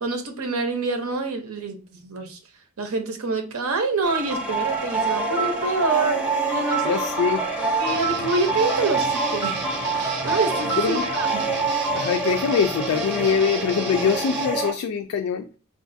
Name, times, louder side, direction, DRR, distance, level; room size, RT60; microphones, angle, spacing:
voice 1, 0.0-2.4 2.8-6.2 6.5-6.9 7.8-9.6 9.9-11.4, right 3 dB, 90° right, 0.7 m, -26 dB
sound 1, 4.0-14.7, right 3 dB, 5° right, 0.6 m, -26 dB
voice 2, 6.8-7.5 10.7-11.0 11.9-15.5, left 6 dB, 80° left, 0.3 m, -23 dB
Guitar, 7.8-14.6, right 6 dB, 50° right, 0.4 m, -35 dB
3.7 x 2.4 x 2.6 m
head